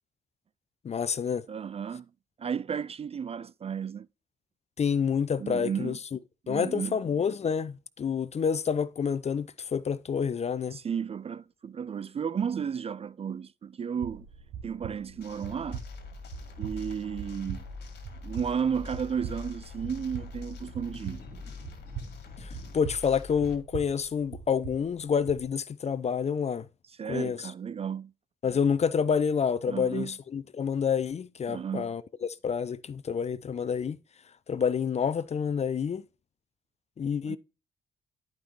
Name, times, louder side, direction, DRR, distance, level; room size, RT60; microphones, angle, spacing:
voice 1, 0.8-1.4 4.8-6.2 6.5-10.8 22.4-26.7 27.1-27.4 28.4-34.0 34.5-36.0 37.0-37.4, left 6 dB, 35° left, 0.5 m, -28 dB
voice 2, 1.5-2.1 2.4-4.1 5.4-5.9 6.5-6.9 10.7-14.3 14.6-15.8 16.6-17.6 18.2-21.2 27.0-28.1 29.7-30.1 31.5-31.9 37.2-37.4, right 7 dB, 30° right, 0.4 m, -33 dB
sound 1, 14.0-25.5, right 8 dB, 65° right, 1.1 m, -43 dB
sound 2, 15.2-23.5, left 3 dB, 60° left, 2.2 m, -43 dB
11.0 x 5.3 x 3.0 m
figure-of-eight pair, 40°, 20 cm